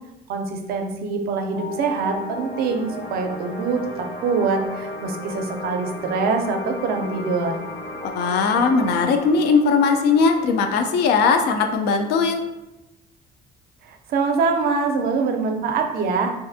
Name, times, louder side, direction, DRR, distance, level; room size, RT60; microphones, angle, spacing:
voice 1, 0.3-7.6 13.8-16.3, right 4 dB, 65° right, 5 dB, 0.4 m, -24 dB
sound 1, 1.5-12.5, left 2 dB, 40° left, 0.7 m, -35 dB
voice 2, 8.0-12.5, left 5 dB, 75° left, 5 dB, 0.4 m, -19 dB
2.5 x 2.4 x 2.5 m, 0.94 s
cardioid pair, 110°, 17 cm